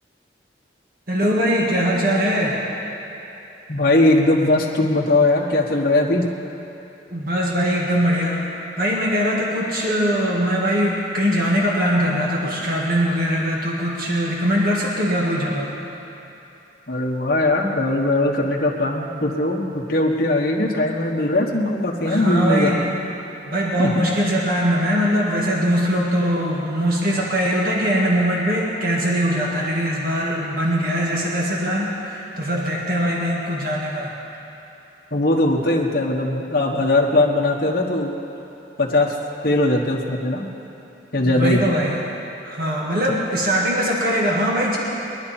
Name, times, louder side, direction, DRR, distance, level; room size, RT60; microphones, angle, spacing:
voice 1, 1.1-2.6 7.1-8.4 8.8-15.7 22.0-22.9 23.5-34.1 41.2-42.0 42.4-44.8, equal, 55° right, -3 dB, 1.8 m, -21 dB
voice 2, 3.7-6.2 16.9-22.7 23.8-24.0 35.1-38.1 38.8-39.1 39.4-40.4 41.1-41.6, left 2 dB, 55° left, -2 dB, 1.4 m, -20 dB
22.0 x 11.0 x 4.4 m, 2.9 s
head